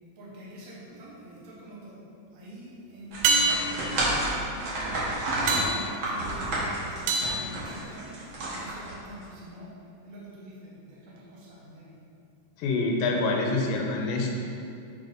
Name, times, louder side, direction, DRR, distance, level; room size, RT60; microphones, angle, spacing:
voice 1, 0.2-2.0 2.3-5.0 5.5-8.2 8.4-9.7 10.0-12.0, right 1 dB, 75° right, -6 dB, 0.7 m, -45 dB
sound 1, 0.9-1.5 3.2-8.4 12.9-13.0, right 3 dB, 90° right, 1.5 m, -29 dB
sound 2, 3.1-9.2, right 1 dB, 50° right, 1.7 m, -30 dB
voice 2, 12.6-14.3, left 3 dB, 90° left, 0 dB, 2.5 m, -26 dB
7.0 x 3.9 x 5.2 m, 2.6 s
omnidirectional pair, 3.8 m